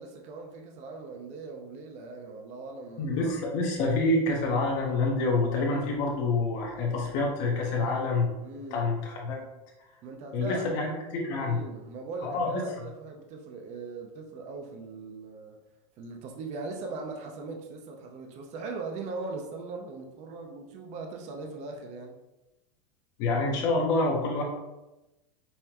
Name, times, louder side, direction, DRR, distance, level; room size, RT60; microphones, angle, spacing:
voice 1, 0.0-3.3 8.4-8.9 10.0-10.7 11.4-15.6 16.0-22.1, right 3 dB, 35° right, 2 dB, 0.6 m, -39 dB
voice 2, 3.0-8.3 8.7-9.4 10.3-11.6 12.2-12.6 23.2-24.4, left 3 dB, 50° left, -1 dB, 0.9 m, -27 dB
5.5 x 2.2 x 2.9 m, 1.0 s
supercardioid pair, 135°, 20 cm